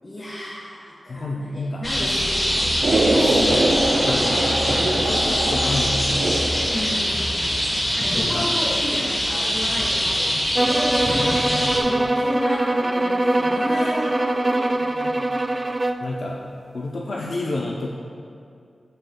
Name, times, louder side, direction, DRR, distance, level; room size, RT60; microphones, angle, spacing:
voice 1, 0.0-2.8 6.7-7.3 7.9-15.3, left 1 dB, 35° left, -5 dB, 1.3 m, -32 dB
voice 2, 1.1-1.8 3.1-3.6 4.1-4.5 5.0-6.5 8.1-8.6 11.2-11.8 16.0-16.4 16.7-17.9, left 2 dB, 65° left, -2 dB, 0.6 m, -29 dB
sound 1, 1.8-11.8, equal, 20° left, 1.4 m, -23 dB
sound 2, 2.8-6.8, right 2 dB, 65° right, 0.7 m, -23 dB
sound 3, 10.5-16.1, right 1 dB, 25° right, 0.4 m, -22 dB
13.0 x 6.5 x 2.3 m, 2.4 s
wide cardioid pair, 80°, 0 cm